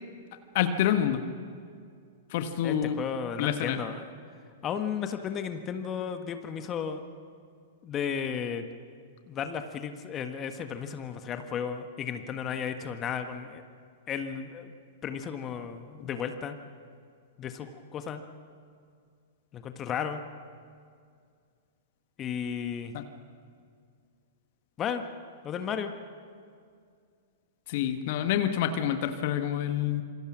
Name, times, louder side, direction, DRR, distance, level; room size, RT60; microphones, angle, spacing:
voice 1, 0.5-1.2 2.3-3.0 3.4-3.8 22.9-23.0 27.7-30.0, left 10 dB, 50° left, 8 dB, 1.5 m, -27 dB
voice 2, 2.6-4.1 4.6-7.0 7.8-8.7 9.3-13.6 14.1-14.7 15.0-16.6 17.4-18.2 19.5-20.2 22.2-22.9 24.8-25.0 25.4-25.9, left 7 dB, 25° left, 7 dB, 1.5 m, -34 dB
27.0 x 24.0 x 6.2 m, 2.2 s
figure-of-eight pair, 105°, 0 cm